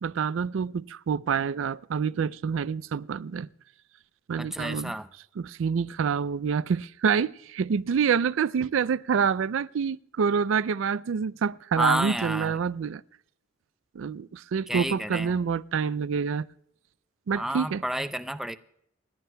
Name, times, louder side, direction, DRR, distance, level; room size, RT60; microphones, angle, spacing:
voice 1, 0.0-3.5 4.3-4.9 5.4-13.0 13.9-16.5 17.3-17.8, right 6 dB, 75° right, 0.4 m, -27 dB
voice 2, 4.4-5.1 11.8-12.6 14.7-15.3 17.3-18.6, equal, ahead, 0.4 m, -30 dB
29.0 x 11.0 x 2.2 m
head